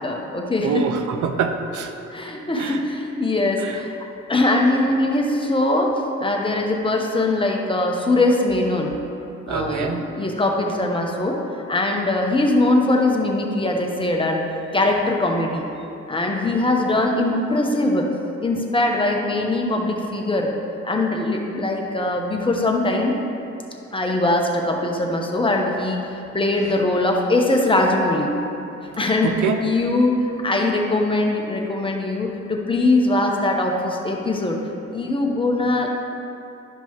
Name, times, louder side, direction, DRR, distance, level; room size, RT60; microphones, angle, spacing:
voice 1, 0.0-0.9 2.1-3.9 4.3-5.9 6.2-8.9 9.5-11.4 11.7-14.4 14.7-15.7 16.1-18.1 18.4-20.5 20.8-23.2 23.9-26.1 26.3-28.3 29.0-34.6 34.9-35.9, left 2 dB, 15° left, 0 dB, 1.0 m, -21 dB
voice 2, 0.6-1.9 2.5-2.8 3.6-3.8 9.5-10.0 29.2-29.6, right 6 dB, 80° right, 6 dB, 0.7 m, -25 dB
12.0 x 5.3 x 3.1 m, 2.9 s
cardioid pair, 90°, 30 cm